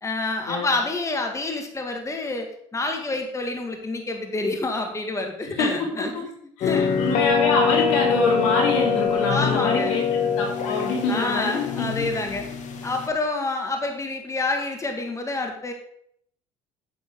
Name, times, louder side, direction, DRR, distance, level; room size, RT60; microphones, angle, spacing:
voice 1, 0.0-6.3 6.6-7.0 9.3-10.0 11.1-12.5 12.8-15.7, left 3 dB, 20° left, 3 dB, 2.0 m, -28 dB
voice 2, 6.6-11.9, left 3 dB, 80° left, 0 dB, 3.0 m, -25 dB
sound 1, 6.6-13.1, left 6 dB, 55° left, 1.6 m, -24 dB
9.2 x 7.4 x 4.7 m, 0.68 s
hypercardioid pair, 70°, 15 cm